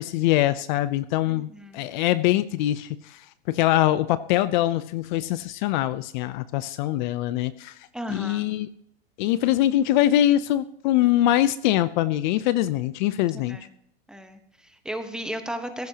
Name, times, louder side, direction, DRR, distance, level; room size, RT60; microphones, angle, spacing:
voice 1, 0.0-7.8 8.1-8.7 9.2-13.6, left 13 dB, 50° left, 15 dB, 0.6 m, -23 dB
voice 2, 1.3-1.9 7.9-8.4 13.5-13.6 14.1-15.9, equal, ahead, 7 dB, 1.0 m, -35 dB
15.5 x 15.0 x 2.9 m, 0.74 s
supercardioid pair, 155°, 31 cm